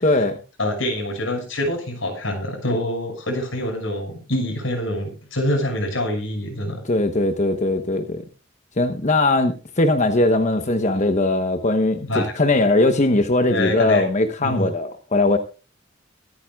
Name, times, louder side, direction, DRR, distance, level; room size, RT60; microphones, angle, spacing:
voice 1, 0.0-0.4 6.9-8.2 8.8-12.1 12.4-15.4, left 2 dB, 40° left, 1.1 m, -20 dB
voice 2, 0.6-6.8 12.1-12.2 13.5-14.0 14.4-14.7, left 1 dB, 90° left, 6.1 m, -25 dB
23.5 x 9.4 x 2.4 m
head